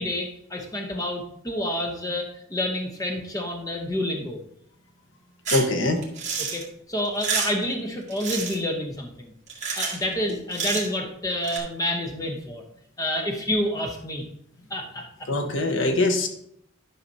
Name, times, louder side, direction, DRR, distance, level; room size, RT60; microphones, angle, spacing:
voice 1, 0.0-4.4 6.4-9.3 9.8-12.6 13.0-14.3 14.7-15.3, left 1 dB, 20° left, 3 dB, 0.8 m, -29 dB
sound 1, 5.4-5.7 6.0-6.6 7.0-7.6 8.1-8.6 9.5-10.0 10.3-10.9 11.4-11.6, right 5 dB, 40° right, 1.7 m, -29 dB
voice 2, 5.5-6.0 15.3-16.3, left 2 dB, 75° left, 5 dB, 1.0 m, -22 dB
10.5 x 5.7 x 2.7 m, 0.72 s
head